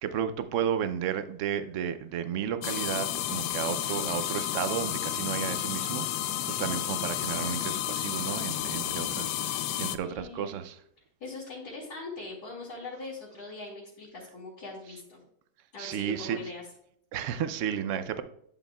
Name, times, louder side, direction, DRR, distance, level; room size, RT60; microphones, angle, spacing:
voice 1, 0.0-10.8 15.8-16.4 17.1-18.2, right 8 dB, 75° right, 11 dB, 0.7 m, -33 dB
sound 1, 2.6-10.0, left 12 dB, 80° left, 1.2 m, -31 dB
voice 2, 10.0-10.5 11.2-15.2 15.7-16.6, left 3 dB, 65° left, -6 dB, 2.6 m, -41 dB
11.0 x 7.2 x 2.3 m, 0.70 s
omnidirectional pair, 1.9 m